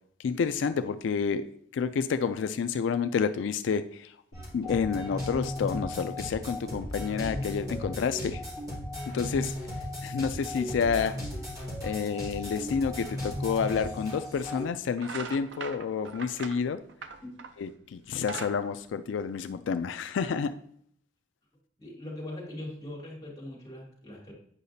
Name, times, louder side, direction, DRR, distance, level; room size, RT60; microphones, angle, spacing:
voice 1, 0.2-1.5 1.7-4.2 4.5-8.4 9.1-9.6 10.0-11.2 11.8-16.8 17.6-20.6, left 6 dB, 90° left, 10 dB, 0.3 m, -29 dB
sound 1, 4.3-14.6, left 1 dB, 20° right, 2.4 m, -36 dB
sound 2, 14.4-14.6 14.9-17.7 18.0-19.7, right 5 dB, 75° right, 0.6 m, -41 dB
voice 2, 21.8-24.3, left 1 dB, 20° left, -4 dB, 2.8 m, -41 dB
8.3 x 5.7 x 2.7 m, 0.66 s
head